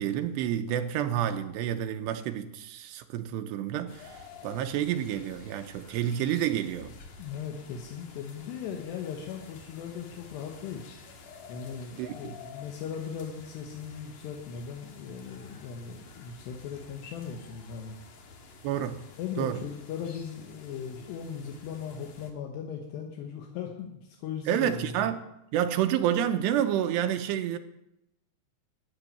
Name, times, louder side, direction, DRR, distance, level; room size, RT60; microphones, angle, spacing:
voice 1, 0.0-4.2 4.4-6.9 12.0-12.4 18.6-19.0 19.4-19.6 24.5-25.2 25.5-27.6, right 10 dB, 85° right, 2.9 m, -29 dB
sound 1, 3.9-22.3, left 4 dB, 60° left, 1.9 m, -50 dB
voice 2, 7.2-10.9 11.5-18.0 19.2-25.1, left 7 dB, 80° left, 3.3 m, -38 dB
13.0 x 9.3 x 6.8 m
omnidirectional pair, 4.9 m